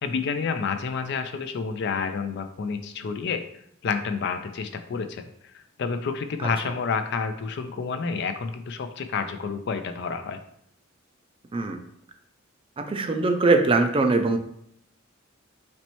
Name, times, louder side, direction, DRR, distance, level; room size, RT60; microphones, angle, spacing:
voice 1, 0.0-3.4 3.8-5.2 5.5-10.4, left 5 dB, 55° left, 8 dB, 0.4 m, -29 dB
voice 2, 12.8-14.4, right 3 dB, 25° right, 6 dB, 0.4 m, -21 dB
4.2 x 3.1 x 3.0 m, 0.71 s
head